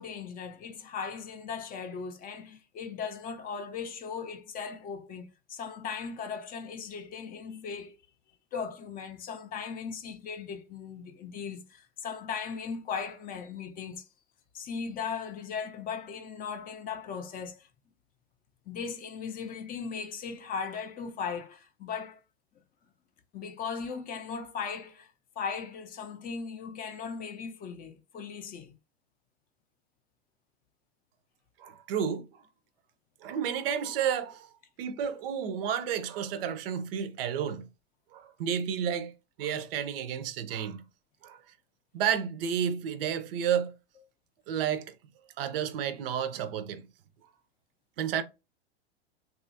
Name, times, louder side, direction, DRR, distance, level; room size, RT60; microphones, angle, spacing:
voice 1, 0.0-8.0 8.5-14.1 14.5-17.7 18.7-22.2 23.3-28.7, left 6 dB, 25° left, 0.4 m, -38 dB
voice 2, 31.6-32.3 33.2-34.5 34.8-37.7 38.1-39.1 39.4-40.8 41.2-41.4 41.9-43.7 44.5-44.9 45.4-46.9 48.0-48.2, right 8 dB, 60° right, 0.5 m, -31 dB
2.9 x 2.4 x 2.6 m
hypercardioid pair, 95°, 32 cm